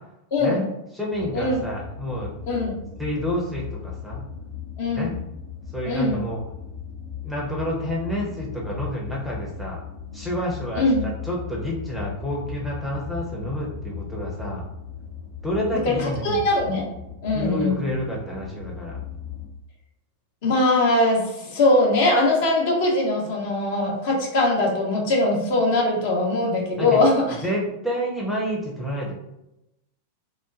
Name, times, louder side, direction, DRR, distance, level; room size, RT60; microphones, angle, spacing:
voice 1, 0.3-0.6 1.3-1.6 2.5-2.7 4.8-5.1 5.8-6.2 10.8-11.0 15.7-16.9 17.2-17.8 20.4-27.3, left 2 dB, 50° left, -1 dB, 0.7 m, -21 dB
voice 2, 0.9-2.3 3.0-4.2 4.9-5.1 5.7-6.4 7.2-9.8 10.1-14.6 15.4-16.5 17.3-19.0 26.8-27.0 27.4-29.1, equal, ahead, -3 dB, 0.6 m, -29 dB
sound 1, 1.1-19.5, left 7 dB, 90° right, 0.9 m, -37 dB
3.0 x 2.2 x 2.4 m, 0.88 s
figure-of-eight pair, 90°, 0 cm